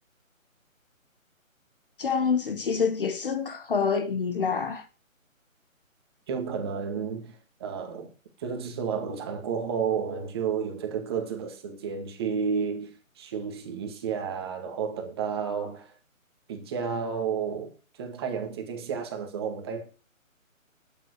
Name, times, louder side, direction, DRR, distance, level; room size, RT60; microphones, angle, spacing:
voice 1, 2.0-4.8, left 5 dB, 40° left, 1.7 m, -27 dB
voice 2, 6.3-8.1 8.4-15.9 16.5-19.9, right 6 dB, 20° right, 2.1 m, -32 dB
13.0 x 9.5 x 4.8 m
hypercardioid pair, 170°, 41 cm